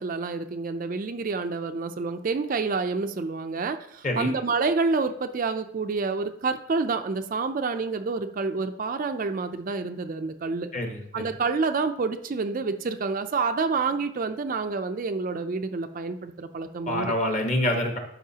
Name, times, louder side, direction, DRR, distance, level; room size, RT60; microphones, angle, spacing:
voice 1, 0.0-10.7 11.1-17.1, right 4 dB, 40° right, 7 dB, 0.4 m, -28 dB
voice 2, 10.7-11.2 16.9-18.0, left 1 dB, 35° left, 3 dB, 1.2 m, -26 dB
12.0 x 5.3 x 2.8 m, 0.74 s
head